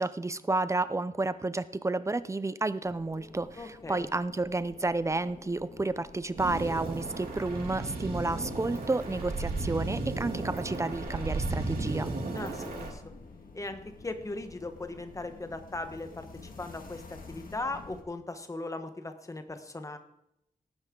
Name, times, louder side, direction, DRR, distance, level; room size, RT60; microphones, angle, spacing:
voice 1, 0.0-12.1, right 2 dB, 20° right, 14 dB, 0.4 m, -31 dB
sound 1, 2.8-18.0, left 4 dB, 70° left, 1.6 m, -50 dB
voice 2, 3.6-4.1 12.3-13.0 13.5-17.0 17.3-20.0, left 2 dB, 20° left, 8 dB, 1.1 m, -38 dB
sound 2, 6.4-12.9, right 2 dB, 80° right, 2.5 m, -34 dB
18.0 x 9.6 x 3.7 m, 0.81 s
wide cardioid pair, 145°, 15 cm